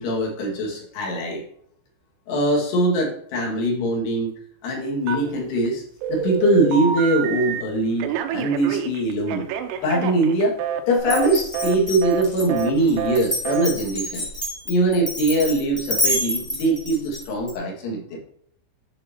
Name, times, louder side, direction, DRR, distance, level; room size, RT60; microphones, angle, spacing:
voice 1, 0.0-1.4 2.3-4.3 4.6-5.8 6.1-9.5 9.8-10.6 10.9-14.3 14.7-18.2, right 1 dB, 60° left, -1 dB, 3.5 m, -22 dB
Telephone, 5.1-5.7 6.0-7.6 8.0-10.8 11.1-11.3 11.5-11.8 12.0-12.2 12.5-12.7 13.0-13.2 13.5-13.7, right 8 dB, 90° right, 3.6 m, -27 dB
Glass, 11.0-17.5, equal, 10° left, 1.9 m, -28 dB
10.5 x 6.2 x 2.8 m, 0.64 s
omnidirectional pair, 6.0 m